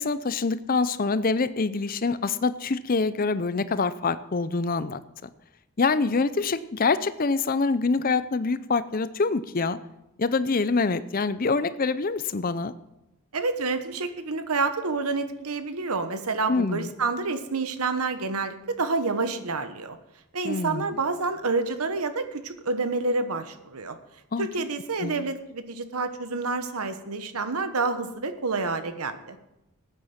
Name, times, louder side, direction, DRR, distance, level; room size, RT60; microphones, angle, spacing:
voice 1, 0.0-5.0 5.8-9.8 10.2-12.7 16.5-16.9 20.4-21.0 24.3-24.5 25.0-25.3, left 4 dB, 40° left, 14 dB, 0.6 m, -25 dB
voice 2, 13.3-20.0 20.3-24.0 24.4-29.4, right 3 dB, 80° right, 10 dB, 1.2 m, -28 dB
14.5 x 9.2 x 5.9 m, 0.94 s
head